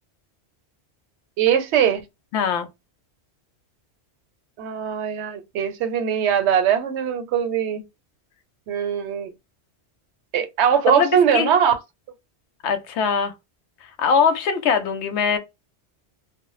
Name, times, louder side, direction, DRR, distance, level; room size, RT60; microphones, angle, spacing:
voice 1, 1.4-2.0 4.6-7.8 8.7-9.3 10.3-11.8, right 8 dB, 80° right, 0.9 m, -21 dB
voice 2, 2.3-2.7 11.0-11.5 12.6-13.3 14.0-15.4, left 6 dB, 90° left, 0.9 m, -21 dB
2.0 x 2.0 x 3.0 m
omnidirectional pair, 1.1 m